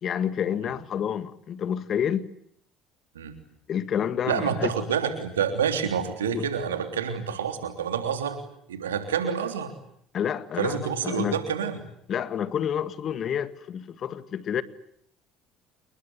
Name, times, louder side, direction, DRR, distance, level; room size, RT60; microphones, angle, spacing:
voice 1, 0.0-2.3 3.7-4.9 6.2-6.4 10.1-11.4 12.1-14.6, left 8 dB, 45° left, 1.8 m, -29 dB
voice 2, 4.3-8.4 8.7-9.7 10.6-11.8, right 7 dB, 85° right, 3.2 m, -28 dB
28.5 x 21.0 x 9.7 m
hypercardioid pair, 60°, 0 cm